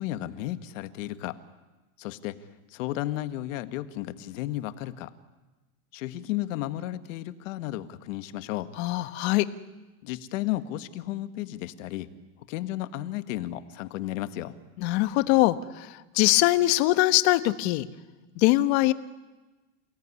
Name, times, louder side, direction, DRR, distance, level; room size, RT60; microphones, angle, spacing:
voice 1, 0.0-1.4 2.0-2.4 2.7-5.1 5.9-8.7 10.0-12.1 12.5-14.5, left 14 dB, 70° left, 11 dB, 1.7 m, -33 dB
voice 2, 8.8-9.5 14.8-17.9 18.4-18.9, left 17 dB, 55° left, 12 dB, 1.3 m, -22 dB
29.0 x 17.5 x 9.7 m, 1.2 s
supercardioid pair, 165°, 40 cm